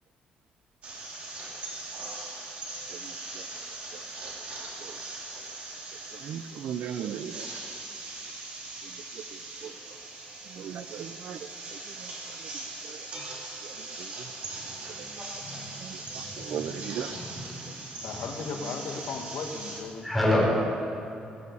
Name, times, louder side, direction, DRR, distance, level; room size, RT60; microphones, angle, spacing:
sound 1, 0.8-19.8, right 2 dB, 45° right, 2.3 m, -40 dB
voice 1, 2.9-3.5 3.9-4.4 4.8-5.0 6.1-7.5 8.8-10.0 10.4-13.1 13.3-14.3 15.0-15.2 15.7-17.1 17.6-17.8, right 9 dB, 60° right, 12 dB, 0.4 m, -40 dB
voice 2, 18.0-20.1, left 4 dB, 75° left, 4 dB, 1.2 m, -36 dB
voice 3, 20.0-20.6, left 1 dB, ahead, -5 dB, 3.4 m, -26 dB
18.0 x 6.8 x 6.8 m, 2.8 s
cardioid pair, 170°, 3 cm